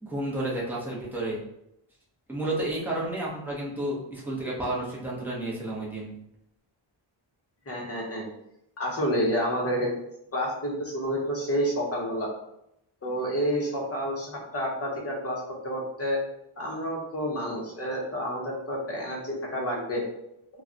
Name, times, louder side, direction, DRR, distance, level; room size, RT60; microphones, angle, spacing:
voice 1, 0.0-1.4 2.3-6.2, right 1 dB, 5° right, -5 dB, 0.8 m, -31 dB
voice 2, 7.7-8.2 8.8-9.9 10.3-12.3 13.0-16.2 16.6-20.0, equal, 30° left, -2 dB, 0.9 m, -29 dB
2.3 x 2.3 x 3.8 m, 0.80 s
wide cardioid pair, 115°, 49 cm